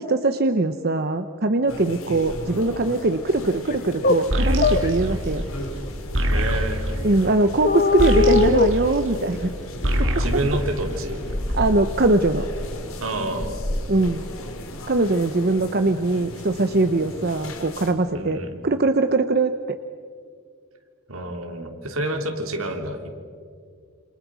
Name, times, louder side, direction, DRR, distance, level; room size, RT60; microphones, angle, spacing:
voice 1, 0.0-5.4 7.0-9.4 10.0-10.1 11.5-12.5 13.9-14.2 14.9-19.5, right 2 dB, 50° right, 8 dB, 0.8 m, -21 dB
sound 1, 1.7-17.9, left 1 dB, 80° left, 3.5 m, -34 dB
sound 2, 3.7-3.8 4.0-4.2 4.6-4.9 7.6-8.7, left 3 dB, 40° left, 1.0 m, -19 dB
sound 3, 4.3-9.5 9.8-11.5, equal, 65° right, 3.2 m, -25 dB
voice 2, 6.3-6.8 10.2-11.2 13.0-13.6 18.1-18.7 21.1-23.1, right 1 dB, 80° right, 4 dB, 3.2 m, -28 dB
28.0 x 26.5 x 6.3 m, 2.2 s
head